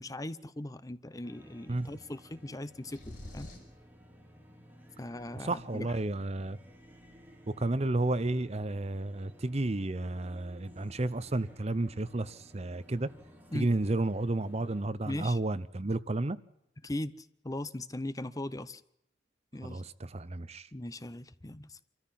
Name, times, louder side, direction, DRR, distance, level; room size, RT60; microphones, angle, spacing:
voice 1, 0.0-3.0 3.3-3.5 5.0-6.0 13.5-13.7 15.0-15.4 16.8-18.8 19.5-19.8 20.7-21.8, left 1 dB, 20° left, 0.7 m, -39 dB
sound 1, 1.2-14.8, equal, 10° right, 2.8 m, -55 dB
sound 2, 2.9-3.8, left 1 dB, 45° left, 6.4 m, -45 dB
voice 2, 5.4-6.6 7.6-13.1 13.5-16.4 19.6-20.7, right 2 dB, 35° right, 0.7 m, -32 dB
27.0 x 14.0 x 7.5 m
head